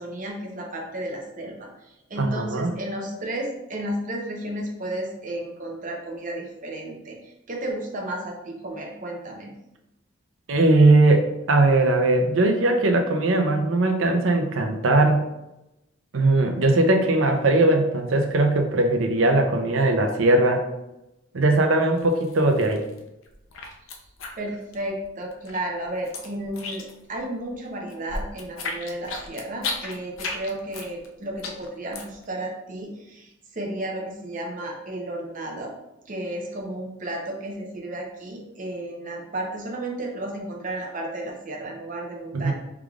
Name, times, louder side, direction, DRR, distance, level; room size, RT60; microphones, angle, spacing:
voice 1, 0.0-9.5 24.4-35.7 36.1-42.5, right 1 dB, 40° right, -1 dB, 0.8 m, -33 dB
voice 2, 2.2-2.7 10.5-15.3 16.1-20.6 21.3-22.8 42.3-42.5, right 2 dB, 75° right, 4 dB, 0.6 m, -20 dB
sound 1, 22.0-23.0 23.3-25.1 25.3-27.2 27.5-32.3, left 3 dB, 90° left, 0.6 m, -34 dB
4.8 x 3.5 x 2.4 m, 0.91 s
head